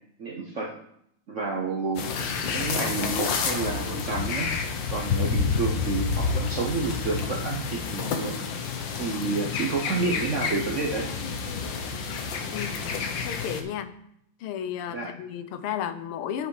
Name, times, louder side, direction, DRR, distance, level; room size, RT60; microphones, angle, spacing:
voice 1, 0.2-0.8 1.3-2.1 2.5-4.6 4.9-8.4 9.0-11.1 14.9-15.1, right 3 dB, 55° right, 0 dB, 0.8 m, -29 dB
sound 1, 2.0-13.6, left 5 dB, 65° left, 1.5 m, -29 dB
voice 2, 13.2-13.9 14.4-16.5, left 9 dB, 80° left, 11 dB, 1.5 m, -33 dB
9.9 x 5.9 x 4.8 m, 0.74 s
omnidirectional pair, 2.4 m